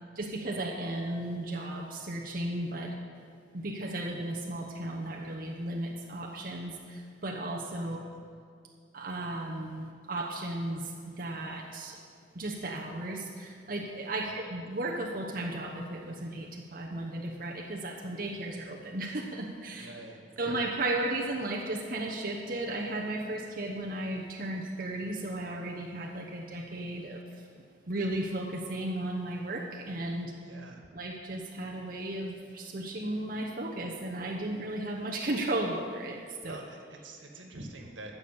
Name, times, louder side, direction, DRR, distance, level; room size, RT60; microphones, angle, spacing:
voice 1, 0.2-2.9 3.5-8.0 8.9-12.0 12.3-19.9 20.4-27.5 27.9-30.3 30.9-36.6, right 1 dB, 50° right, -1 dB, 1.0 m, -35 dB
voice 2, 7.8-8.2 19.8-20.6 30.4-30.8 36.4-38.1, right 2 dB, 85° right, 2 dB, 1.8 m, -46 dB
14.0 x 7.0 x 7.1 m, 2.2 s
head